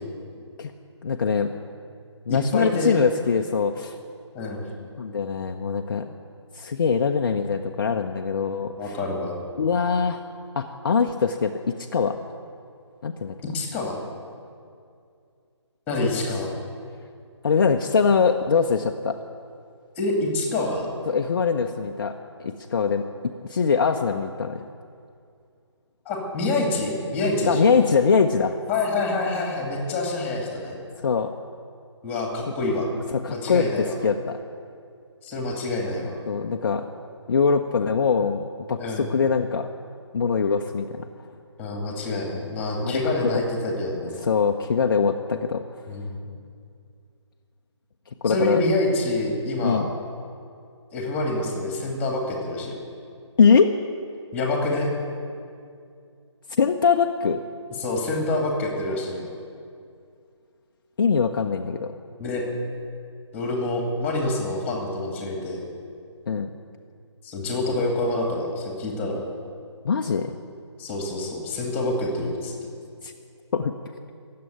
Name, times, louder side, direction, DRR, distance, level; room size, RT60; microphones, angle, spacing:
voice 1, 1.0-1.5 2.3-4.0 5.0-6.1 6.5-9.0 9.6-10.2 10.6-12.2 13.0-13.3 17.4-19.2 21.1-22.1 22.4-23.1 23.4-24.6 27.5-28.5 31.0-31.3 33.2-34.4 36.3-36.9 37.3-38.4 38.7-39.7 40.1-41.1 42.8-43.3 44.2-45.6 48.2-48.6 49.6-49.9 53.4-53.7 56.6-57.4 61.0-61.9 66.3-66.5 69.8-70.3 73.0-73.1 73.5-73.7, left 5 dB, 45° left, 3 dB, 0.7 m, -22 dB
voice 2, 2.3-3.0 4.3-4.7 8.8-9.4 13.4-14.0 15.9-16.5 20.0-20.9 26.1-27.7 28.7-30.8 32.0-32.9 33.3-33.9 35.2-36.2 38.8-39.0 41.6-44.2 45.9-46.2 48.3-49.8 50.9-52.8 54.3-54.9 57.8-59.3 62.2-62.4 63.3-65.6 67.2-69.2 70.8-72.5, left 2 dB, 10° left, 0 dB, 2.3 m, -27 dB
17.0 x 7.7 x 9.2 m, 2.4 s
figure-of-eight pair, 155°, 15 cm